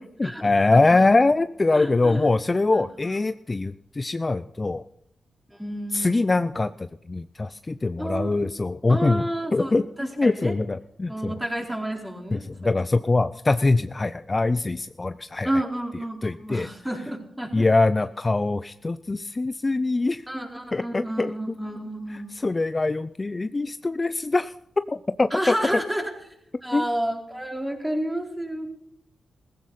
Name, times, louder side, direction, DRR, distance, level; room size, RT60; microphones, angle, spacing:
voice 1, 0.2-4.8 5.9-9.2 9.5-11.4 12.3-15.5 16.2-16.7 17.5-20.2 20.7-21.3 22.1-24.5 24.9-25.5 26.7-26.9, left 3 dB, 30° left, 13 dB, 0.5 m, -23 dB
voice 2, 1.7-2.3 2.7-2.8 5.5-6.4 8.0-8.5 8.9-10.5 11.1-12.7 15.4-17.7 20.3-22.4 25.3-26.1 26.6-28.7, right 1 dB, 10° right, 1 dB, 4.1 m, -30 dB
16.0 x 15.0 x 4.1 m, 0.75 s
cardioid pair, 60°, 0 cm